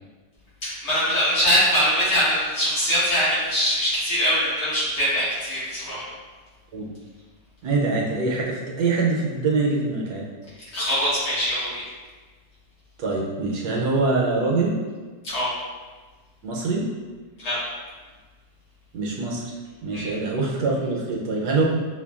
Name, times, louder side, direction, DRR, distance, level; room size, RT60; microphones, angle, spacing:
voice 1, 0.6-6.0 10.7-11.8 15.2-15.5 17.4-17.6 19.9-20.1, equal, 75° left, -11 dB, 2.1 m, -22 dB
voice 2, 7.6-10.2 13.0-14.8 16.4-16.9 18.9-19.4 19.8-21.6, right 3 dB, 75° right, -3 dB, 1.1 m, -24 dB
5.6 x 2.2 x 2.3 m, 1.4 s
omnidirectional pair, 1.9 m